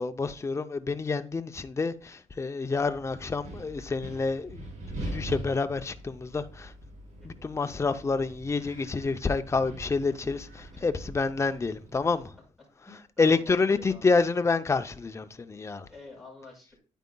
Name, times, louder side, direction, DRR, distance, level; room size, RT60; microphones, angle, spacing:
voice 1, 0.0-4.7 5.0-6.7 7.2-12.3 13.2-15.9, left 4 dB, 20° left, 0.5 m, -28 dB
Wind, 2.8-12.3, right 1 dB, 80° right, 4.3 m, -43 dB
voice 2, 12.9-14.1 15.9-16.8, left 3 dB, ahead, 4.7 m, -49 dB
9.5 x 9.1 x 2.2 m
cardioid pair, 125°, 13 cm